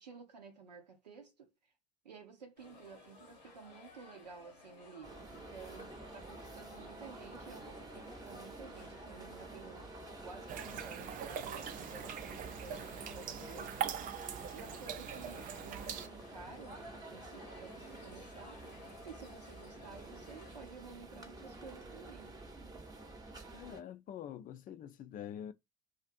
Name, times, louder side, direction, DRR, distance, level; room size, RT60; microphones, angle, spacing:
voice 1, 0.0-1.5 2.0-9.9 10.2-13.8 14.5-18.6 19.0-22.4, right 5 dB, 90° right, 0.7 m, -53 dB
sound 1, 2.6-20.6, left 4 dB, 85° left, 1.0 m, -56 dB
sound 2, 5.0-23.8, right 2 dB, 20° right, 0.8 m, -50 dB
sound 3, 10.5-16.1, right 9 dB, 40° right, 0.4 m, -42 dB
voice 2, 23.5-25.5, left 10 dB, 40° left, 0.4 m, -46 dB
2.5 x 2.5 x 2.5 m
hypercardioid pair, 65°, 21 cm